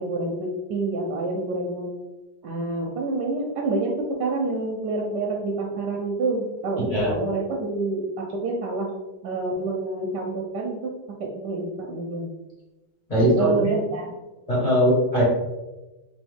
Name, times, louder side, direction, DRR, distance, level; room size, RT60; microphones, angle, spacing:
voice 1, 0.0-1.9 2.4-8.9 9.2-10.9 11.2-12.3 13.4-14.1, right 3 dB, 70° right, 0 dB, 1.1 m, -27 dB
voice 2, 13.1-13.5 14.5-15.2, equal, 20° left, -8 dB, 1.4 m, -20 dB
3.6 x 3.0 x 3.5 m, 1.1 s
omnidirectional pair, 2.2 m